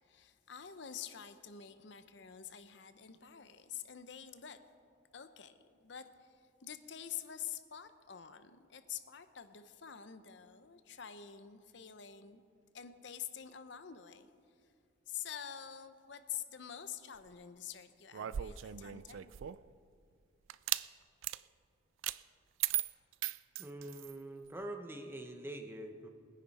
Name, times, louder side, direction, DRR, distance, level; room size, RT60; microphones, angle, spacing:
voice 1, 0.0-4.6 5.1-5.6 5.8-12.4 12.7-14.3 15.1-19.3, left 9 dB, 65° left, 11 dB, 0.7 m, -47 dB
sound 1, 18.1-19.7 20.5-20.9 21.2-21.4 22.0-22.2 22.6-24.2, right 13 dB, 75° right, 0.3 m, -37 dB
voice 2, 23.6-26.1, right 1 dB, 10° right, 5 dB, 0.9 m, -44 dB
21.0 x 10.0 x 4.2 m, 2.3 s
head